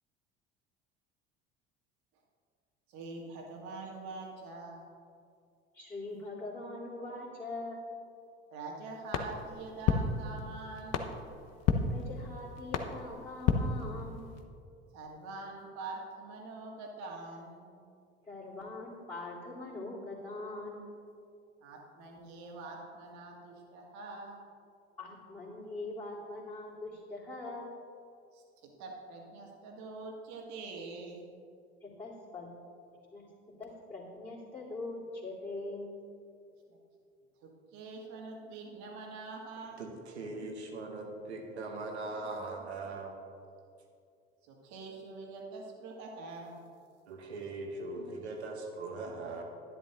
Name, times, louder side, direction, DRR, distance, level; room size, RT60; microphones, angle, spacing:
voice 1, 2.9-4.9 8.5-11.1 14.9-17.7 21.6-24.4 28.3-31.2 36.7-36.8 37.4-39.8 44.4-46.6, right 3 dB, 60° right, -1 dB, 2.0 m, -45 dB
voice 2, 5.7-7.8 11.9-14.3 18.2-20.8 25.0-27.7 31.8-32.5 33.1-33.3 33.6-36.0, left 2 dB, 15° left, -10 dB, 2.6 m, -42 dB
sound 1, 9.1-14.4, left 6 dB, 50° left, 0.9 m, -33 dB
voice 3, 39.8-43.1 47.1-49.4, right 3 dB, 80° right, 2 dB, 1.4 m, -40 dB
11.0 x 10.5 x 3.0 m, 2.4 s
figure-of-eight pair, 65°, 32 cm